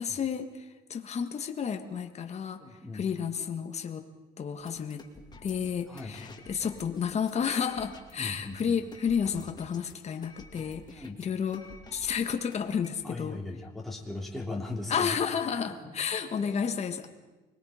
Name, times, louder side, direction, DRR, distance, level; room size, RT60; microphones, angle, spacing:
voice 1, 0.0-2.6 2.9-4.1 4.4-5.1 5.4-13.4 14.9-17.1, left 7 dB, 40° left, 6 dB, 1.7 m, -31 dB
voice 2, 2.6-3.0 5.9-6.1 8.1-8.7 10.9-11.2 13.0-15.1 16.4-16.6, left 2 dB, ahead, -2 dB, 3.1 m, -38 dB
sound 1, 4.6-13.0, left 3 dB, 25° left, 2.6 m, -51 dB
25.5 x 21.5 x 5.1 m, 1.2 s
cardioid pair, 110°, 17 cm